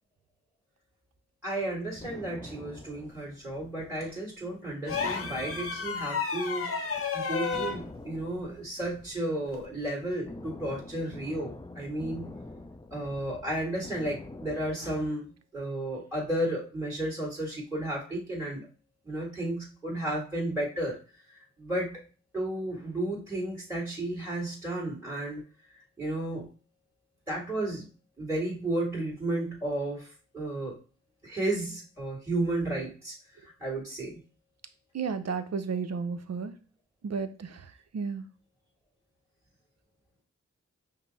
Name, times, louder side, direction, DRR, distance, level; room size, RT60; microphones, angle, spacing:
voice 1, 1.4-6.7 7.1-12.3 12.9-18.7 19.0-21.0 21.6-22.0 22.3-25.4 26.0-26.5 27.3-27.9 28.2-30.1 30.3-30.8 31.2-33.1 33.4-34.2, right 1 dB, 10° right, -4 dB, 1.8 m, -33 dB
sound 1, 1.6-4.1 4.4-4.5 4.9-6.6 6.9-7.1 7.5-14.8, left 2 dB, 15° left, 0.4 m, -45 dB
sound 2, 4.9-7.8 9.5-9.7, left 5 dB, 50° left, 0.8 m, -32 dB
voice 2, 34.9-36.5 37.0-37.6 37.9-38.3, right 5 dB, 60° right, 9 dB, 0.6 m, -32 dB
5.4 x 2.0 x 4.0 m, 0.36 s
cardioid pair, 50°, 29 cm